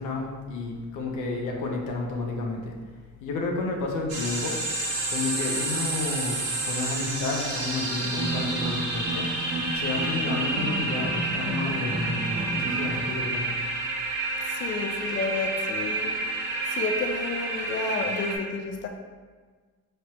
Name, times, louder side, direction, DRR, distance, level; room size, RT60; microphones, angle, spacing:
voice 1, 0.0-2.7 3.2-4.6 5.1-9.3 9.7-13.6, left 3 dB, 90° left, 0 dB, 0.8 m, -31 dB
sound 1, 4.1-18.4, right 2 dB, 60° right, 1.1 m, -30 dB
sound 2, 8.0-13.0, right 2 dB, 25° right, 0.8 m, -33 dB
voice 2, 14.4-16.2 16.7-18.9, left 4 dB, 40° left, 4 dB, 0.4 m, -31 dB
4.4 x 3.2 x 3.0 m, 1.5 s
cardioid pair, 90°, 30 cm